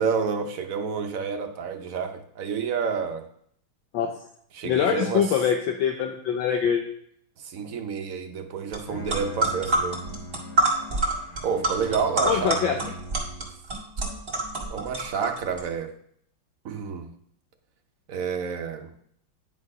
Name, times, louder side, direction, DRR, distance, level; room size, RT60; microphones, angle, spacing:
voice 1, 0.0-3.2 4.5-5.4 7.4-10.0 11.4-12.8 14.7-15.9 16.6-17.1 18.1-18.9, right 6 dB, 60° right, 5 dB, 0.9 m, -29 dB
voice 2, 4.6-6.8 12.3-12.8, left 8 dB, 75° left, 3 dB, 1.4 m, -24 dB
Bowed string instrument, 8.7-13.7, right 1 dB, 50° left, 0.7 m, -41 dB
sound 1, 8.7-8.8 9.1-15.6, right 2 dB, 30° right, 1.9 m, -27 dB
9.8 x 4.5 x 4.8 m, 0.67 s
omnidirectional pair, 2.2 m